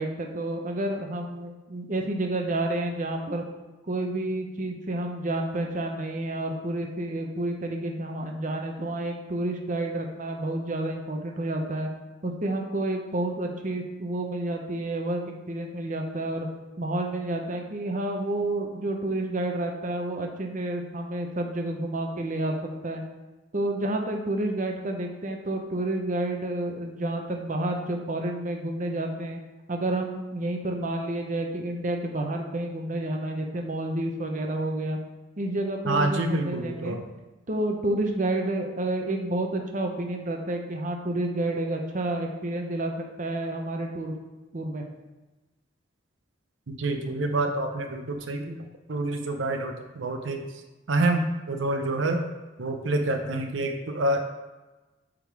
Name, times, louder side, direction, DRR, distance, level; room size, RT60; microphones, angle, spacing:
voice 1, 0.0-3.4 3.9-11.9 12.2-15.2 15.5-16.5 16.8-22.5 22.8-23.0 23.5-29.4 29.7-35.0 35.4-37.0 37.5-44.1 44.5-44.9, right 1 dB, 40° right, 2 dB, 0.8 m, -30 dB
voice 2, 35.9-37.0 46.7-48.6 48.9-50.5 50.9-52.2 52.6-54.2, right 2 dB, 80° right, 5 dB, 0.7 m, -27 dB
8.4 x 3.8 x 4.6 m, 1.1 s
head